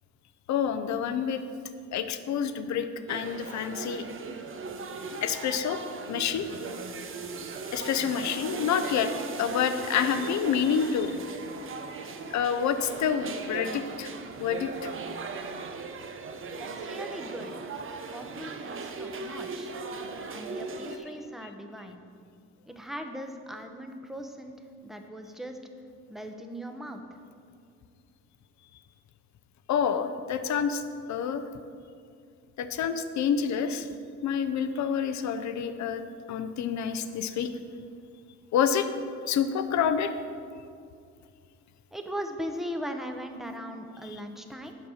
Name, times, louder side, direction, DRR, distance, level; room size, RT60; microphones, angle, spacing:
voice 1, 0.5-1.4 1.9-4.0 5.2-5.8 6.1-6.5 7.7-9.1 9.4-11.2 12.3-14.1 14.4-14.9 29.7-30.8 31.1-31.4 32.6-33.9 34.2-36.0 36.3-37.5 38.5-38.9 39.3-40.1 44.1-44.2, left 7 dB, 70° left, 10 dB, 0.7 m, -28 dB
sound 1, 3.1-21.0, right 4 dB, 45° right, 0.7 m, -38 dB
voice 2, 16.6-17.6 18.1-19.7 20.3-22.0 22.7-24.5 24.8-25.6 26.1-27.0 41.9-44.8, equal, ahead, 5 dB, 0.8 m, -39 dB
7.4 x 5.4 x 6.3 m, 2.3 s
cardioid pair, 90°, 30 cm